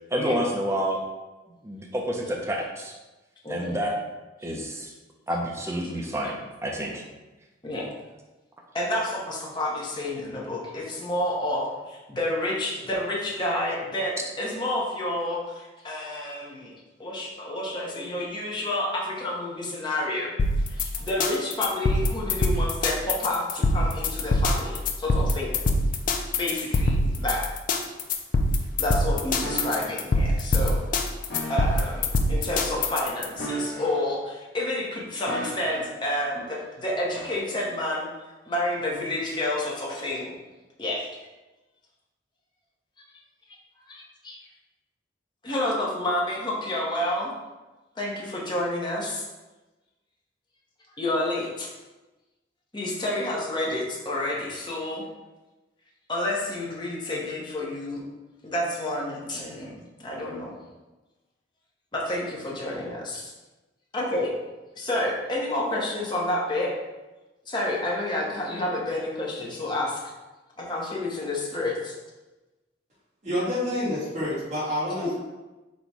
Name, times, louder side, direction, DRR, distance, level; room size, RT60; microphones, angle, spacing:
voice 1, 0.1-1.0 1.6-2.9 3.5-4.0 4.4-4.9 5.3-6.4 6.6-7.0, equal, 15° right, -1 dB, 0.5 m, -28 dB
voice 2, 3.4-3.8 7.6-7.9 8.7-16.7 17.0-20.3 20.7-25.6 26.4-27.5 28.8-30.8 31.5-38.1 38.5-40.4 40.8-41.1 43.9-44.4 45.4-47.3 48.0-49.2 51.0-51.7 52.7-55.0 56.1-58.0 58.4-60.6 61.9-63.3 63.9-64.3 64.8-66.7 67.5-70.0 70.6-71.9, left 1 dB, 25° left, -3 dB, 0.8 m, -29 dB
sound 1, 20.4-33.3, left 2 dB, 45° left, 0.4 m, -24 dB
sound 2, 29.4-30.0 31.3-32.0 33.3-34.2 35.3-36.0 37.1-37.4, right 1 dB, 60° left, 1.0 m, -34 dB
voice 3, 73.2-75.2, left 1 dB, 40° right, -9 dB, 1.4 m, -28 dB
4.1 x 2.2 x 4.6 m, 1.1 s
head